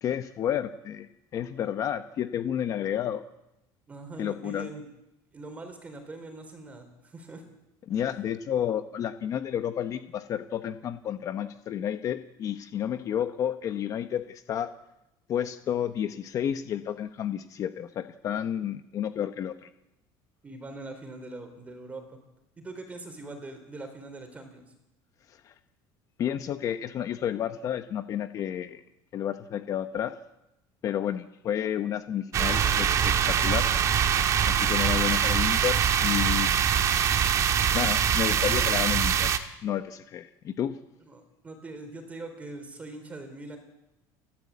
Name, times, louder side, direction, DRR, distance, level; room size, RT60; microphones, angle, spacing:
voice 1, 0.0-3.2 4.2-4.7 7.9-14.7 15.3-19.7 25.3-25.5 26.2-28.8 29.1-30.1 30.8-33.7 34.5-36.5 36.9-37.0 37.7-39.3 39.6-40.8, left 10 dB, 35° left, 10 dB, 0.9 m, -31 dB
voice 2, 3.9-4.8 5.3-7.4 20.4-22.2 22.6-24.6 41.1-43.6, right 2 dB, 15° right, 7 dB, 4.1 m, -42 dB
sound 1, 32.3-39.4, right 8 dB, 35° right, 1.5 m, -23 dB
30.0 x 12.5 x 8.5 m, 0.89 s
cardioid pair, 165°, 10 cm